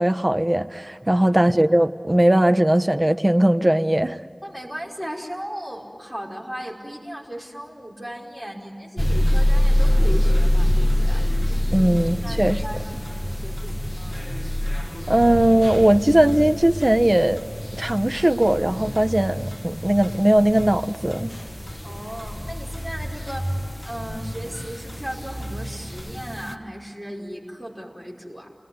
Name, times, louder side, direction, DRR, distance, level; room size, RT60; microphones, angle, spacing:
voice 1, 0.0-4.2 11.7-12.6 15.1-17.4 17.7-21.3, right 1 dB, 35° right, 1.0 m, -19 dB
voice 2, 4.4-11.2 11.7-11.9 12.2-14.2 21.8-23.5 23.8-28.5, equal, 5° right, 5.3 m, -36 dB
sound 1, 9.0-26.5, left 1 dB, 10° left, 1.4 m, -25 dB
30.0 x 20.5 x 9.6 m
wide cardioid pair, 45°, 0 cm